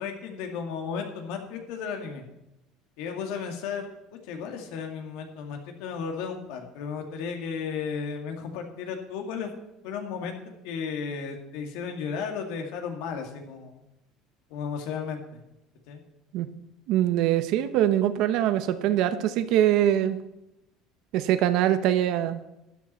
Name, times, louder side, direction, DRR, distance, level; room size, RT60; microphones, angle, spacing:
voice 1, 0.0-2.3 3.0-3.9 4.2-9.5 9.8-10.4 10.6-13.8 14.5-15.4 15.9-16.0, left 6 dB, 75° left, 4 dB, 2.1 m, -34 dB
voice 2, 16.9-20.2 21.1-22.4, right 12 dB, 60° right, 12 dB, 0.9 m, -23 dB
12.5 x 10.0 x 4.4 m, 0.89 s
cardioid pair, 150°, 0 cm